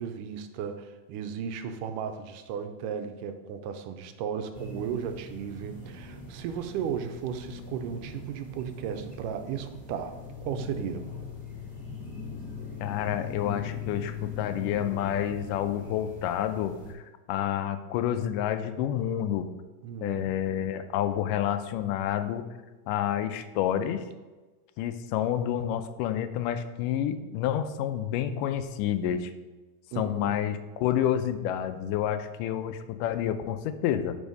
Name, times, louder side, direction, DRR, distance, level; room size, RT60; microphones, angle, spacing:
voice 1, 0.0-11.1 19.8-20.4 29.9-30.4, right 8 dB, 85° right, 8 dB, 2.2 m, -35 dB
sound 1, 4.5-16.9, left 4 dB, 15° left, 2.4 m, -40 dB
voice 2, 12.8-17.0 17.3-19.5 20.0-22.5 22.9-24.0 24.8-29.3 30.0-34.2, left 10 dB, 90° left, 10 dB, 2.2 m, -29 dB
6.9 x 6.3 x 5.3 m, 1.2 s
omnidirectional pair, 3.7 m